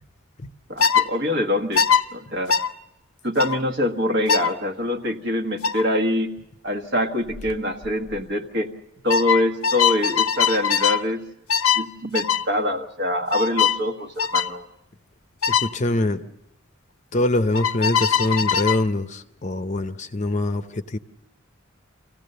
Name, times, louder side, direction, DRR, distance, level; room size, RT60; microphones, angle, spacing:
voice 1, 0.7-2.5 3.2-6.3 6.6-8.7 9.0-11.2 11.7-14.7, left 1 dB, 55° right, 3 dB, 1.5 m, -24 dB
sound 1, 0.8-1.1 1.8-2.0 2.5-2.7 3.4-3.6 4.3-4.5 5.6-5.8 7.3-7.5 7.8-8.2 9.1-11.0 11.5-11.9 12.1-12.4 13.3-13.8 14.2-14.5 15.4-15.7 17.5-18.8, left 7 dB, 90° left, 0.7 m, -21 dB
voice 2, 15.5-16.2 17.1-21.0, left 2 dB, 35° left, 9 dB, 0.7 m, -24 dB
26.0 x 16.0 x 6.7 m, 0.88 s
head